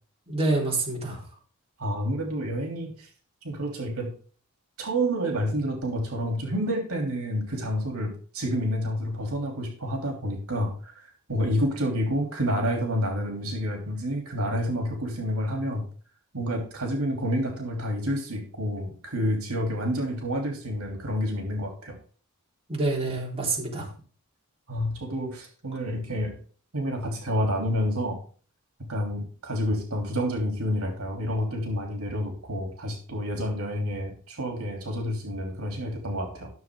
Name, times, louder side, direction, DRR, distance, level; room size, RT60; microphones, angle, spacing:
voice 1, 0.3-1.2 22.7-23.9, right 2 dB, 30° right, -3 dB, 3.9 m, -27 dB
voice 2, 1.8-3.1 3.4-4.1 4.8-15.8 16.3-21.9 24.7-26.4 26.7-28.2 28.9-36.5, equal, 70° right, 1 dB, 3.2 m, -29 dB
14.5 x 7.3 x 3.8 m, 0.41 s
head